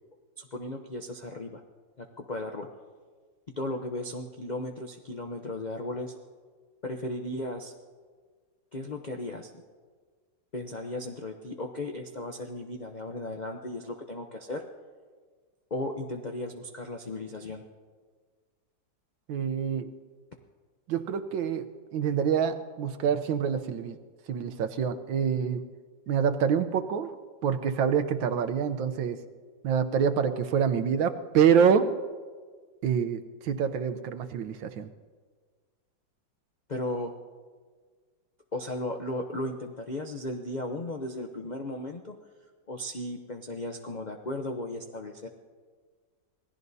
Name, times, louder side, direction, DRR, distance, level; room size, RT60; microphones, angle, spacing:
voice 1, 0.4-1.6 2.0-2.7 3.6-6.1 6.8-7.7 8.7-9.6 10.5-14.6 15.7-17.6 36.7-37.1 38.5-42.2 42.7-45.3, left 1 dB, 70° left, 3 dB, 0.4 m, -35 dB
voice 2, 19.3-19.9 20.9-24.0 24.3-25.6 26.1-27.1 27.4-29.2 29.6-31.9 32.8-34.9, right 7 dB, 90° right, 8 dB, 1.6 m, -26 dB
26.5 x 18.0 x 2.7 m, 1.5 s
omnidirectional pair, 2.0 m